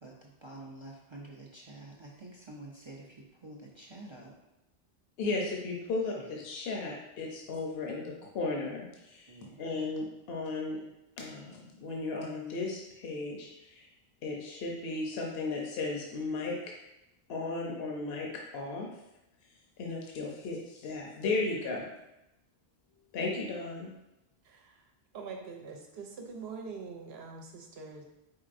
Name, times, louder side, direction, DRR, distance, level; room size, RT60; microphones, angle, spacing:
voice 1, 0.0-4.3 6.1-6.3 9.3-9.7, right 2 dB, 40° right, -2 dB, 0.4 m, -48 dB
voice 2, 5.2-10.8 11.2-13.9 14.2-16.7 17.3-18.3 18.5-18.9 19.8-21.8 23.1-23.9, left 3 dB, 75° left, -1 dB, 0.9 m, -35 dB
voice 3, 24.4-28.0, right 4 dB, 75° right, 2 dB, 0.9 m, -44 dB
4.6 x 4.0 x 2.5 m, 0.90 s
omnidirectional pair, 1.1 m